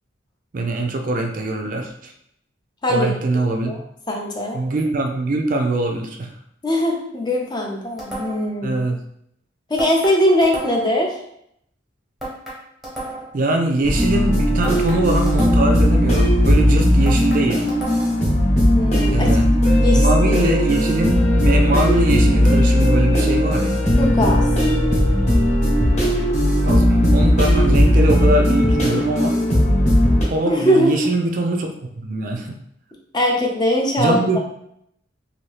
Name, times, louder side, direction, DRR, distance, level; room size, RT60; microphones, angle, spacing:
voice 1, 0.5-2.1 2.9-3.8 4.5-6.3 8.6-9.0 13.3-17.7 19.1-19.5 19.9-23.8 26.7-29.4 30.3-31.7 32.0-32.5 34.0-34.4, right 2 dB, 45° right, 3 dB, 0.4 m, -22 dB
voice 2, 4.1-4.6 6.6-8.8 9.7-11.1 18.7-19.3 19.8-20.4 24.0-24.5 30.5-30.9 33.1-34.4, left 1 dB, 25° left, 0 dB, 0.5 m, -20 dB
sound 1, 8.0-8.6 9.8-11.0 12.2-13.4 14.6-15.9 17.1-18.3, right 1 dB, ahead, 0.8 m, -33 dB
sound 2, 13.8-30.2, equal, 40° left, 1.0 m, -17 dB
2.7 x 2.7 x 3.2 m, 0.73 s
head